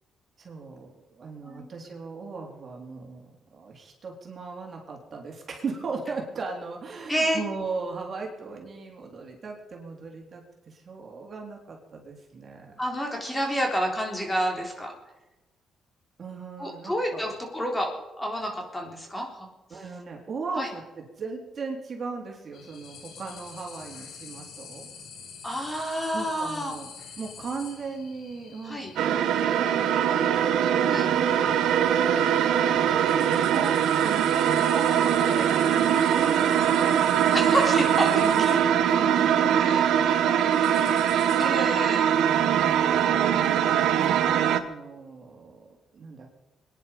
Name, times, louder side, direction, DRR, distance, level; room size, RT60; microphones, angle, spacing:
voice 1, 0.4-12.7 16.2-17.4 19.7-24.9 26.1-26.9 27.2-30.5 31.2-35.5 36.1-41.8 44.0-46.3, right 4 dB, 45° right, 0 dB, 3.6 m, -38 dB
voice 2, 7.1-7.4 12.8-14.9 16.6-19.5 20.6-20.7 25.4-26.7 28.6-28.9 30.8-31.1 37.3-38.2 38.5-38.6 39.6-39.9 41.4-42.1, equal, 15° left, 1 dB, 3.8 m, -29 dB
sound 1, 22.5-41.4, left 6 dB, 80° left, 3.1 m, -46 dB
sound 2, 29.0-44.6, right 9 dB, 85° right, 0.9 m, -22 dB
23.0 x 10.5 x 5.3 m, 1.0 s
cardioid pair, 90°, 0 cm